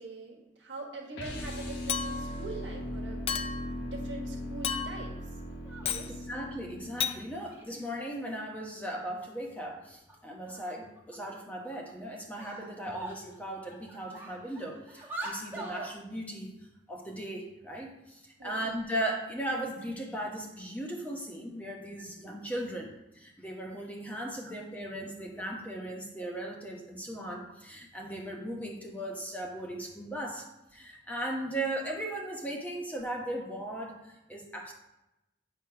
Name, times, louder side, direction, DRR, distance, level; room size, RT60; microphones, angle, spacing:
voice 1, 0.0-3.3 3.8-5.2 5.8-6.1 18.4-18.6 24.4-24.5, right 2 dB, 80° right, 0 dB, 1.4 m, -43 dB
sound 1, 1.1-7.3, left 1 dB, 75° left, 1.3 m, -39 dB
Chink clink, 1.9-2.4 3.3-3.7 4.6-5.1 5.8-6.1 7.0-7.2, left 7 dB, 30° left, 0.3 m, -33 dB
sound 2, 5.5-6.0 7.1-8.0 9.1-9.2 9.6-9.7 10.1-10.2 10.5-11.1 11.7-11.9 12.3-13.4 13.7-15.9, right 2 dB, 10° right, 1.1 m, -43 dB
voice 2, 6.3-34.7, right 1 dB, 10° left, 0 dB, 1.0 m, -37 dB
8.0 x 2.9 x 5.7 m, 0.92 s
head